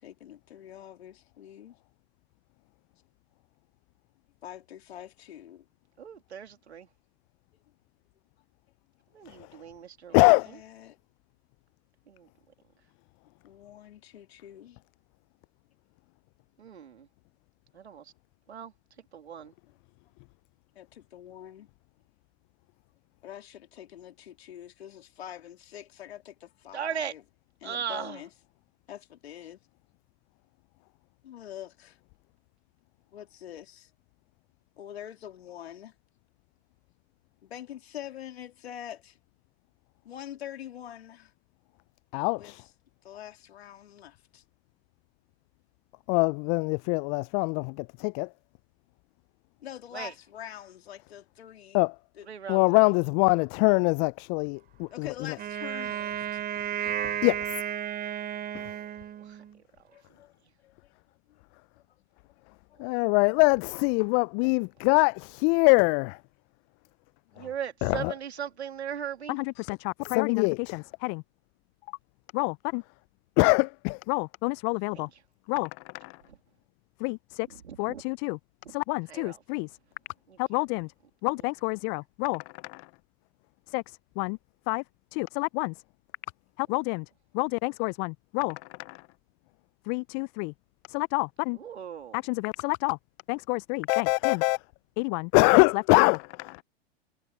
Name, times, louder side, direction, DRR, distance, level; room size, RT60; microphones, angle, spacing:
voice 1, 0.0-1.7 4.4-5.7 10.1-11.0 13.4-14.8 19.7-19.8 20.8-21.7 23.2-27.2 27.6-28.3 28.9-29.6 31.2-32.0 33.1-33.9 34.8-35.9 37.4-39.2 40.0-41.3 42.3-42.5 43.0-44.4 49.6-51.9 52.2-52.3 54.9-56.4 59.9-60.8 61.1-61.4 62.7-62.8, left 11 dB, 75° left, 3.5 m, -45 dB
voice 2, 6.0-6.9 9.1-10.3 12.1-12.3 16.6-17.1 17.7-18.0 18.5-18.7 19.1-19.5 26.7-27.1 27.6-28.2 49.9-50.1 52.3-52.9 59.2-59.4 62.8-63.0 67.4-69.4 74.9-75.0 77.6-78.0 78.6-78.7 79.1-79.4 80.3-80.6 91.5-92.2, right 8 dB, 85° right, 2.8 m, -38 dB
voice 3, 10.1-10.5 42.1-42.6 46.1-48.3 51.7-51.9 52.5-55.1 57.0-57.6 58.5-58.6 62.8-66.2 67.4-67.5 67.8-68.1 69.3-71.2 72.3-72.8 73.4-75.1 75.5-76.1 77.0-77.5 77.8-78.4 78.7-79.7 80.4-80.9 81.2-82.9 83.7-83.8 84.2-84.4 84.7-84.8 85.1-85.7 86.6-87.1 87.3-89.0 89.9-90.5 90.9-91.6 92.1-93.0 93.3-94.6 95.0-96.2, left 35 dB, 40° left, 0.4 m, -25 dB
Wind instrument woodwind instrument, 55.4-59.6, right 10 dB, 30° right, 2.8 m, -33 dB
hypercardioid pair, 95°, 32 cm